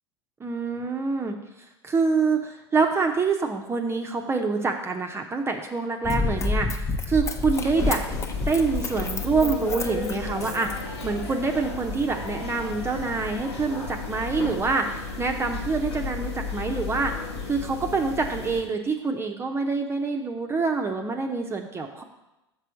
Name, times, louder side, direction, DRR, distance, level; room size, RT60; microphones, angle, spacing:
voice 1, 0.4-1.4 1.8-8.0 8.5-17.1 17.5-22.0, right 4 dB, 20° right, 3 dB, 0.7 m, -26 dB
Run, 6.0-11.3 11.9-12.0, left 3 dB, 20° left, 0.8 m, -29 dB
sound 1, 7.5-18.6, left 4 dB, 80° left, 1.3 m, -34 dB
6.8 x 4.4 x 6.3 m, 0.97 s
figure-of-eight pair, 80°, 14 cm